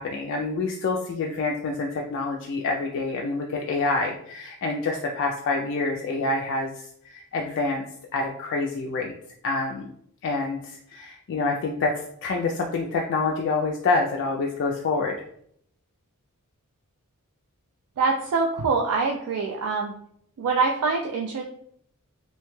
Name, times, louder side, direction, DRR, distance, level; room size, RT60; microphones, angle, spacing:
voice 1, 0.0-6.7 7.0-7.8 8.1-9.1 9.4-9.9 10.2-11.9 12.2-15.1, left 3 dB, 55° left, 0 dB, 0.3 m, -27 dB
voice 2, 18.0-19.9 20.4-21.4, right 4 dB, 75° right, 1 dB, 0.3 m, -24 dB
2.8 x 2.2 x 3.0 m, 0.68 s
head